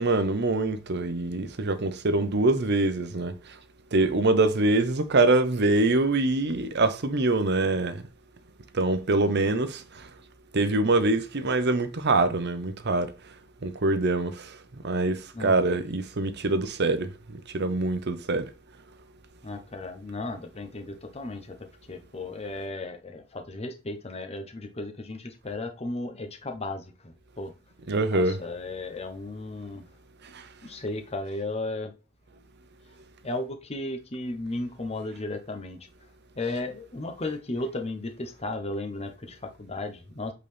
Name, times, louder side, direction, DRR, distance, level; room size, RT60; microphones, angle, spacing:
voice 1, 0.0-3.4 3.9-8.0 8.7-10.1 10.5-13.1 13.6-14.5 14.8-17.1 17.5-18.5 27.9-28.4, right 2 dB, 55° right, 0.9 m, -24 dB
voice 2, 19.4-21.6 21.9-26.9 27.4-27.5 28.1-29.8 30.6-31.9 33.2-35.8 36.4-40.3, left 2 dB, 30° left, 1.0 m, -35 dB
8.1 x 4.1 x 3.5 m
head